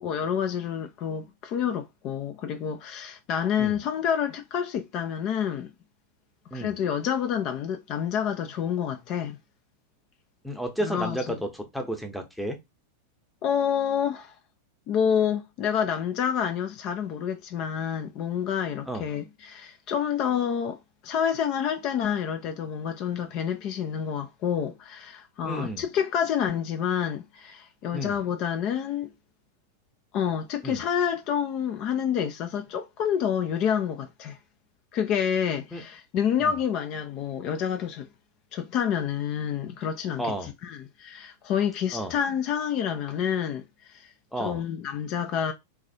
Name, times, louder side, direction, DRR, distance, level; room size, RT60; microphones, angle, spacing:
voice 1, 0.0-5.7 6.5-9.4 10.8-11.4 13.4-14.4 14.9-29.1 30.1-34.4 34.9-38.1 38.5-45.5, left 8 dB, 40° left, 0.5 m, -28 dB
voice 2, 10.4-12.6 18.9-19.0 25.4-25.8 27.9-28.2 30.6-30.8 35.7-35.8 36.4-36.6 40.2-40.5 41.9-42.1 44.3-44.6, equal, ahead, 0.8 m, -32 dB
3.4 x 2.4 x 4.2 m
figure-of-eight pair, 90°, 0 cm